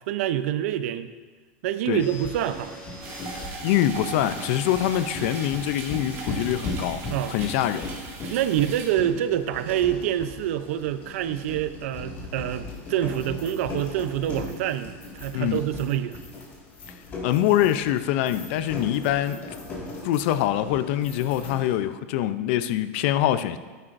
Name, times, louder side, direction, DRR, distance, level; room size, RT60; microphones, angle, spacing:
voice 1, 0.1-1.1 1.6-2.8 7.1-7.3 8.3-16.2, right 11 dB, 65° right, 12 dB, 0.6 m, -26 dB
sound 1, 2.0-21.8, left 2 dB, 25° left, 1.9 m, -38 dB
sound 2, 3.0-8.9, right 3 dB, 30° right, 2.1 m, -39 dB
voice 2, 3.6-7.0 7.3-7.9 15.3-15.6 17.2-19.4 20.0-23.6, left 12 dB, 50° left, 12 dB, 0.5 m, -24 dB
12.0 x 10.0 x 2.6 m, 1.4 s
supercardioid pair, 165°, 8 cm